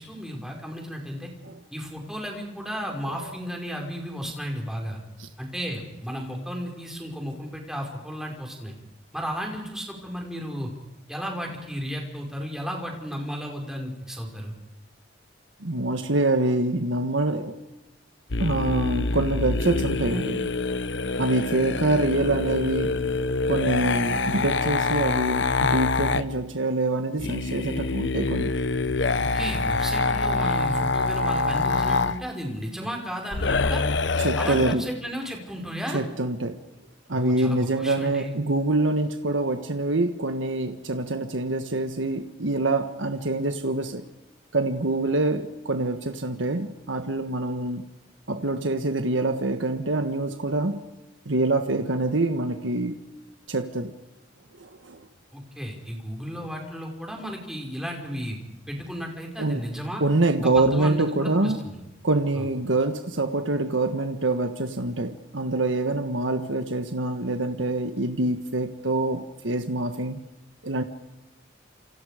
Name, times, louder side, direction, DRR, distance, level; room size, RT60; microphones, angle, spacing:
voice 1, 0.0-1.3 1.7-5.0 5.4-8.7 9.1-10.7 11.1-14.5 29.2-33.8 34.4-36.0 37.1-38.3 55.3-58.4 58.7-60.0 60.4-61.8 62.4-62.5, equal, 5° right, 5.3 m, -34 dB
voice 2, 15.6-17.6 18.4-20.5 21.2-23.0 23.5-28.5 34.2-34.9 35.9-36.6 37.1-44.0 44.5-47.8 48.3-50.8 51.2-53.0 53.5-53.9 54.6-55.0 59.4-59.6 60.0-61.6 62.0-70.2 70.6-70.8, right 2 dB, 75° right, 1.5 m, -25 dB
sound 1, 18.3-26.2 27.2-32.2 33.3-34.8, left 3 dB, 65° left, 1.0 m, -25 dB
29.0 x 28.0 x 5.1 m
head